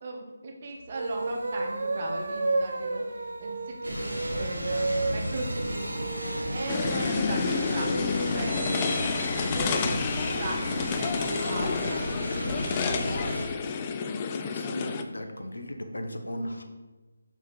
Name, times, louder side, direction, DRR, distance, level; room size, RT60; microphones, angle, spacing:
voice 1, 0.0-6.0 6.5-8.6 9.0-12.3, right 2 dB, 40° right, 1 dB, 1.2 m, -38 dB
sound 1, 0.9-9.0, right 2 dB, 60° right, 0.6 m, -33 dB
sound 2, 3.8-13.5, equal, 90° right, 1.2 m, -33 dB
sound 3, 6.7-15.0, left 5 dB, 25° left, 0.4 m, -30 dB
voice 2, 14.5-16.6, left 1 dB, 80° left, 6 dB, 0.9 m, -36 dB
5.9 x 4.1 x 4.7 m, 1.2 s
figure-of-eight pair, 155°, 0 cm